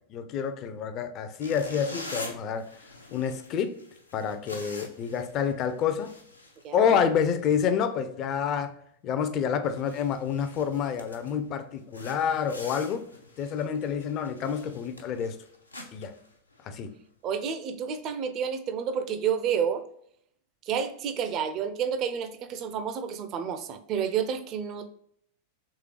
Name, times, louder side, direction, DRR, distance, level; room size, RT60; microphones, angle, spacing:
voice 1, 0.0-2.7 3.1-3.8 4.1-6.1 6.7-8.8 9.0-13.1 13.4-15.4 15.9-16.1 16.6-16.9, left 7 dB, 35° left, 0.4 m, -28 dB
sound 1, 1.4-7.1 7.4-7.6 8.1-8.3 8.7-8.8 9.3-9.4 9.6-11.4 11.9-16.9, left 2 dB, 85° left, 0.6 m, -45 dB
voice 2, 6.6-7.0 17.2-19.8 20.7-24.9, right 7 dB, 35° right, 0.4 m, -30 dB
3.6 x 3.3 x 3.1 m
figure-of-eight pair, 90°, 0 cm